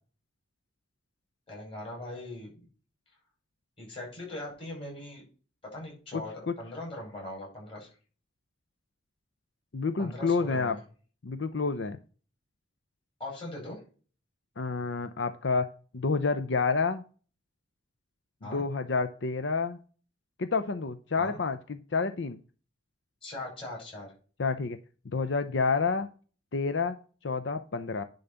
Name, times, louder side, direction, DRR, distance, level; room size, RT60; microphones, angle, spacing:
voice 1, 1.5-2.5 3.8-5.3 5.7-7.9 10.0-10.8 13.2-13.8 18.4-18.6 21.2-21.4 23.2-24.1, left 1 dB, 30° left, -2 dB, 5.8 m, -40 dB
voice 2, 9.7-10.8 11.2-12.0 14.6-15.7 15.9-17.0 18.4-19.8 20.4-22.4 24.4-24.8 25.1-26.1 26.5-27.0 27.2-28.0, left 4 dB, 75° left, 10 dB, 0.7 m, -29 dB
10.5 x 4.0 x 6.8 m, 0.38 s
head